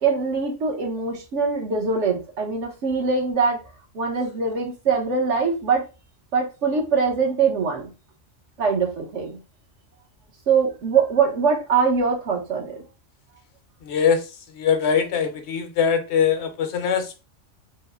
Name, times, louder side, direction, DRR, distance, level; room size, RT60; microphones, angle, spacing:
voice 1, 0.0-3.6 3.9-5.8 6.3-7.9 8.6-9.4 10.5-12.8, right 5 dB, 70° right, 1.3 m, -22 dB
voice 2, 13.8-14.2 14.6-17.2, left 7 dB, 65° left, 0.9 m, -22 dB
3.4 x 2.1 x 3.5 m
omnidirectional pair, 1.3 m